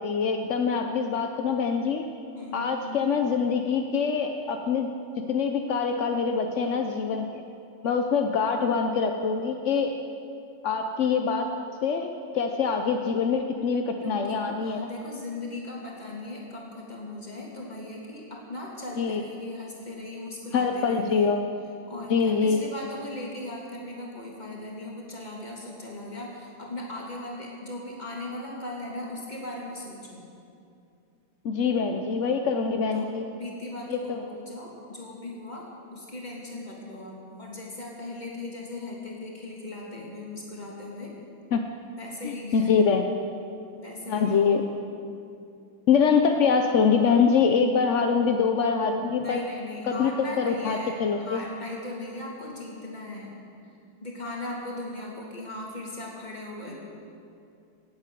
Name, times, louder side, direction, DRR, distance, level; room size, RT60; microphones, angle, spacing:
voice 1, 0.0-2.0 2.5-4.9 5.3-7.4 7.8-9.9 10.6-11.5 11.8-14.9 19.0-19.2 20.5-21.4 22.1-22.6 31.4-33.3 33.9-34.2 41.5-41.6 42.2-43.0 44.1-44.6 45.9-49.4 49.8-51.4, left 5 dB, 60° left, 5 dB, 0.8 m, -24 dB
voice 2, 2.3-2.9 14.0-21.3 21.9-30.3 32.9-41.1 42.0-43.0 43.8-44.6 49.1-53.3 54.0-56.7, left 2 dB, 20° left, -3 dB, 2.9 m, -38 dB
17.0 x 8.3 x 9.3 m, 2.5 s
omnidirectional pair, 2.1 m